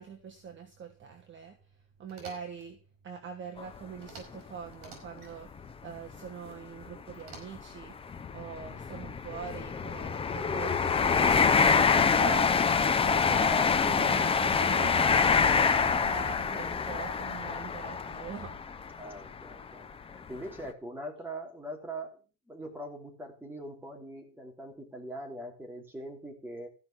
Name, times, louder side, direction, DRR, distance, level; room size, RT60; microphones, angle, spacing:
voice 1, 0.0-1.6 2.0-2.8 3.0-5.5 5.8-8.0 8.3-11.6 12.2-12.6 13.0-18.6, right 6 dB, 25° right, 3 dB, 1.4 m, -42 dB
sound 1, 2.1-2.7 4.0-4.5 4.7-5.3 7.2-7.8, right 5 dB, 45° right, 5.9 m, -50 dB
sound 2, 3.6-3.8 4.3-4.4 5.6-5.7 6.0-6.2 6.8-19.5 20.1-20.3, left 5 dB, 15° left, 0.5 m, -26 dB
voice 2, 19.0-26.7, right 1 dB, 5° right, 1 dB, 3.2 m, -42 dB
15.0 x 5.9 x 7.3 m, 0.35 s
cardioid pair, 155°, 45 cm